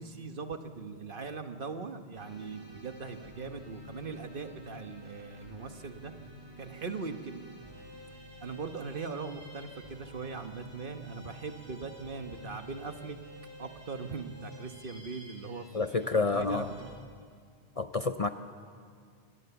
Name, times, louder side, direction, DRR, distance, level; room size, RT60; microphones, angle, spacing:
voice 1, 0.0-6.1 6.6-7.4 8.4-13.2 13.6-15.7 16.0-16.6, right 4 dB, 55° right, 7 dB, 1.4 m, -40 dB
sound 1, 2.1-16.9, right 1 dB, 75° right, 5.0 m, -51 dB
voice 2, 15.7-16.7 17.8-18.3, left 4 dB, 40° left, 9 dB, 0.6 m, -29 dB
26.5 x 20.0 x 7.0 m, 2.2 s
omnidirectional pair, 1.1 m